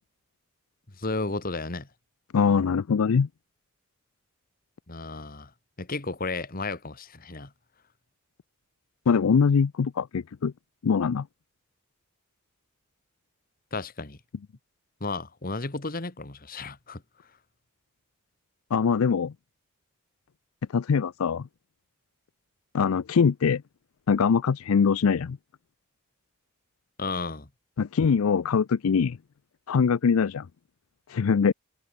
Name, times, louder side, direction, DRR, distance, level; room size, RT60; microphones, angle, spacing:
voice 1, 1.0-1.9 4.9-5.5 5.8-7.5 13.7-14.2 15.0-17.0 27.0-27.5, left 3 dB, 40° left, 1.7 m, -33 dB
voice 2, 2.3-3.3 9.1-10.5 10.8-11.3 18.7-19.3 20.7-21.5 22.7-23.6 24.1-25.4 27.8-29.2 29.7-30.5 31.1-31.5, left 6 dB, 85° left, 0.5 m, -23 dB
head